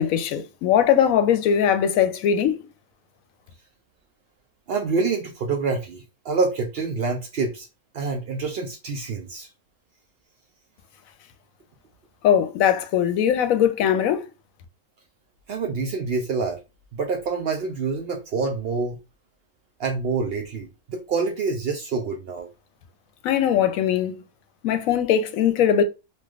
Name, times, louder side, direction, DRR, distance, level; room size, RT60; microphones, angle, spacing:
voice 1, 0.0-2.6 12.2-14.3 23.2-24.1 24.6-25.8, left 9 dB, 75° left, 0.9 m, -20 dB
voice 2, 4.7-7.7 7.9-9.5 15.5-16.6 16.9-19.0 19.8-22.5, right 4 dB, 75° right, 0.5 m, -26 dB
3.2 x 2.7 x 2.3 m
omnidirectional pair, 1.5 m